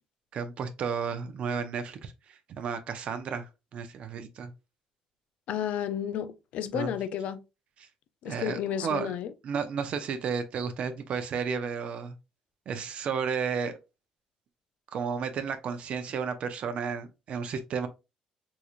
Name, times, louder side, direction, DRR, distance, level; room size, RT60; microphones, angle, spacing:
voice 1, 0.3-4.5 6.7-7.0 8.2-9.2 9.4-12.2 12.7-13.8 14.9-17.9, right 6 dB, 60° right, 0.5 m, -33 dB
voice 2, 5.5-7.4 8.2-9.3, left 9 dB, 70° left, 0.4 m, -32 dB
3.8 x 3.0 x 2.4 m
cardioid pair, 85°, 2 cm